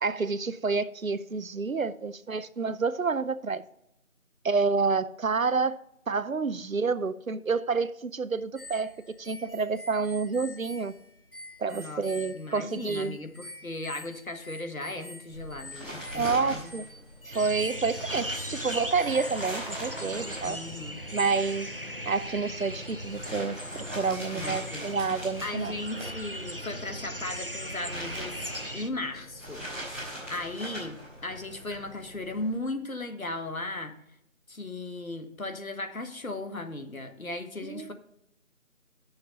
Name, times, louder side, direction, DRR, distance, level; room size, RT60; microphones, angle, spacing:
voice 1, 0.0-3.6 4.4-5.8 6.1-10.9 11.6-13.2 16.1-16.9 17.3-20.6 21.1-21.7 22.1-23.6 23.9-25.7 37.6-37.9, right 4 dB, 75° right, 14 dB, 0.8 m, -29 dB
sound 1, 8.6-19.6, left 1 dB, 40° left, 0.8 m, -46 dB
voice 2, 11.7-12.0 12.3-16.7 20.4-21.0 24.3-24.9 25.4-28.4 28.7-33.9 34.5-37.9, left 2 dB, 80° left, 7 dB, 1.6 m, -37 dB
sound 2, 15.3-32.6, equal, 10° right, 2.2 m, -42 dB
sound 3, 17.3-28.9, equal, 40° right, 0.6 m, -38 dB
9.2 x 6.6 x 5.4 m, 0.79 s
figure-of-eight pair, 170°, 41 cm